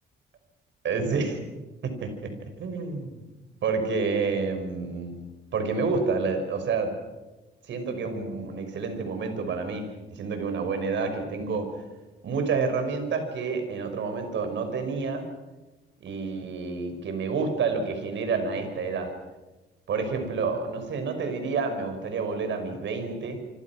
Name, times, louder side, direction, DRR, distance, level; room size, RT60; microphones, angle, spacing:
voice 1, 0.8-1.4 1.8-2.3 2.6-3.2 3.6-5.2 5.5-7.0 7.7-11.7 12.2-15.3 16.0-19.1 19.9-23.4, right 4 dB, 65° right, 6 dB, 5.9 m, -29 dB
28.0 x 25.5 x 6.1 m, 1.1 s
cardioid pair, 90°, 20 cm